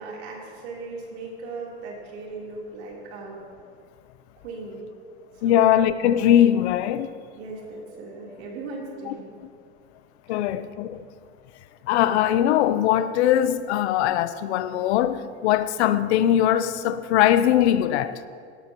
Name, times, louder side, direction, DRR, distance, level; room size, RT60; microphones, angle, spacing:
voice 1, 0.0-3.4 4.4-4.8 5.4-5.8 7.3-9.3 10.3-10.5, right 3 dB, 80° right, 3.6 m, -38 dB
voice 2, 5.4-7.1 9.1-9.2 10.3-11.1 11.8-18.2, left 11 dB, 80° left, 0.7 m, -21 dB
18.0 x 12.5 x 3.0 m
supercardioid pair, 125°, 33 cm